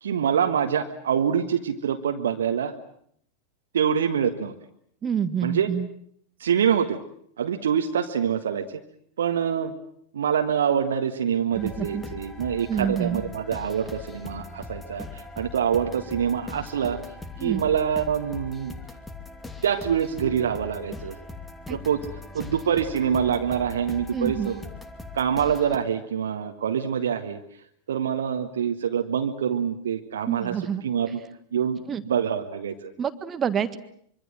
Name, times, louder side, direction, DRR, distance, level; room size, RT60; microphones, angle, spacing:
voice 1, 0.0-2.7 3.7-4.5 5.4-5.7 6.4-7.0 7.4-8.6 9.2-9.7 10.1-17.0 17.4-18.7 19.6-21.2 21.7-22.1 22.3-24.6 25.1-27.4 27.9-30.5 30.8-31.2 31.5-32.9, right 8 dB, 65° right, 5 dB, 1.6 m, -25 dB
voice 2, 5.0-5.9 11.5-12.0 12.7-13.2 17.4-17.6 21.7-21.8 24.1-24.5 30.2-31.1 31.9-32.0 33.0-33.8, right 8 dB, 25° right, 12 dB, 1.7 m, -28 dB
sound 1, 11.5-25.8, left 3 dB, 10° left, 2.6 m, -40 dB
25.5 x 24.5 x 7.6 m, 0.68 s
figure-of-eight pair, 90°, 0 cm